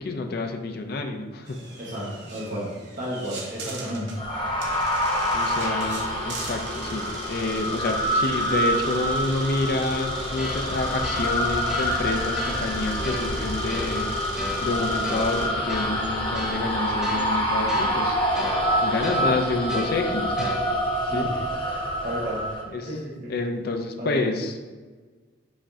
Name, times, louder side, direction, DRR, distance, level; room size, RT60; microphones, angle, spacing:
voice 1, 0.0-1.6 5.3-14.1 14.6-18.2 18.8-20.6 21.1-21.3 22.7-22.8 23.3-24.6, left 2 dB, 55° left, 5 dB, 0.4 m, -28 dB
sound 1, 1.5-15.5, right 3 dB, 60° right, 0.8 m, -40 dB
voice 2, 1.8-2.7 3.0-4.2 21.1-21.5 22.0-22.4 22.8-23.3 24.0-24.2, equal, 45° right, -5 dB, 1.2 m, -32 dB
sound 2, 4.2-22.6, equal, 25° left, 0.9 m, -26 dB
sound 3, 10.4-21.0, equal, 5° right, 0.8 m, -38 dB
5.1 x 3.5 x 2.7 m, 1.4 s
head